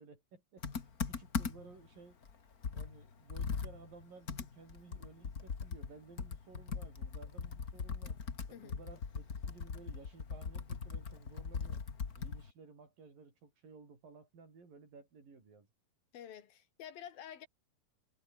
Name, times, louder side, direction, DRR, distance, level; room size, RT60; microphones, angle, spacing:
voice 1, 0.0-2.2 2.7-8.2 8.5-11.8 12.2-15.7, right 4 dB, 75° right, 7.9 m, -56 dB
Computer keyboard, 0.6-1.8 2.2-2.3 2.6-12.5, left 5 dB, 35° left, 1.7 m, -40 dB
voice 2, 16.1-17.5, left 9 dB, 85° left, 4.1 m, -49 dB
omnidirectional pair, 4.0 m